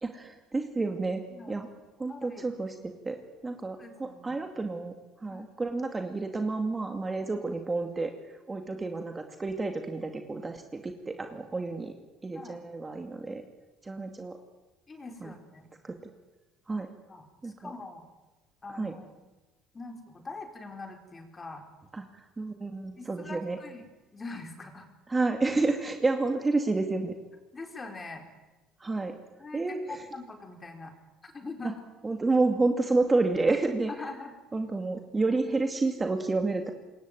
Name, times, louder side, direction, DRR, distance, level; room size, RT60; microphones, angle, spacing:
voice 1, 0.0-1.2 1.5-1.7 2.0-2.7 3.0-3.2 3.4-4.9 5.2-8.1 8.5-11.9 12.2-13.4 13.8-14.4 15.2-15.3 15.8-15.9 16.7-16.9 17.4-17.7 18.8-18.9 21.9-23.6 25.1-27.1 28.8-29.1 29.5-30.0 31.6-31.7 32.0-33.9 34.5-36.7, right 3 dB, 15° right, 5 dB, 2.4 m, -29 dB
voice 2, 2.1-2.5 3.8-4.4 5.3-5.4 7.3-7.4 8.7-8.9 12.3-12.6 14.9-15.7 17.1-18.1 18.6-19.2 19.7-21.6 23.0-24.9 27.5-28.2 28.9-29.0 29.4-30.9 31.2-31.8 33.9-34.3, left 3 dB, 20° left, 4 dB, 4.9 m, -43 dB
27.0 x 22.0 x 9.3 m, 1.1 s
cardioid pair, 125°, 0 cm